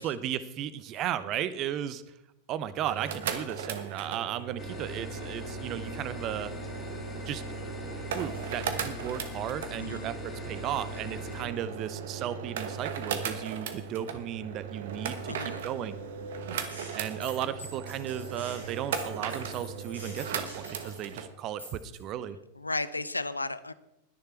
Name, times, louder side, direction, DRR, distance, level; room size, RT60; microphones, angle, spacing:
voice 1, 0.0-2.0 2.5-6.5 7.3-16.0 16.9-22.4, right 10 dB, 35° right, 16 dB, 0.8 m, -35 dB
sound 1, 2.7-21.3, right 7 dB, 55° right, 1.2 m, -37 dB
sound 2, 4.6-11.4, left 7 dB, 20° left, 2.2 m, -43 dB
voice 2, 9.8-10.1 15.3-15.6 22.5-23.7, left 2 dB, 80° left, 15 dB, 0.5 m, -34 dB
Gunshot gunfire, 16.5-21.1 21.6-22.0, equal, 85° right, 4.7 m, -47 dB
20.5 x 6.8 x 4.5 m, 0.86 s
figure-of-eight pair, 90°, 0 cm